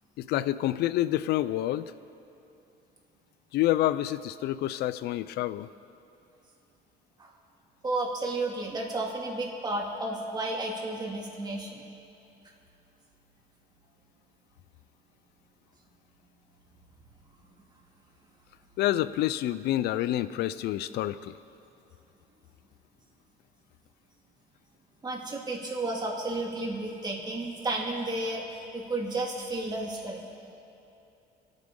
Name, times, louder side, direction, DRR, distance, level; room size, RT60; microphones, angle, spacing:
voice 1, 0.2-1.9 3.5-5.7 18.8-21.3, left 14 dB, 75° left, 15 dB, 0.5 m, -28 dB
voice 2, 7.8-11.8 25.0-30.2, right 2 dB, 25° right, -2 dB, 2.5 m, -32 dB
26.5 x 9.1 x 3.8 m, 2.8 s
cardioid pair, 110°, 17 cm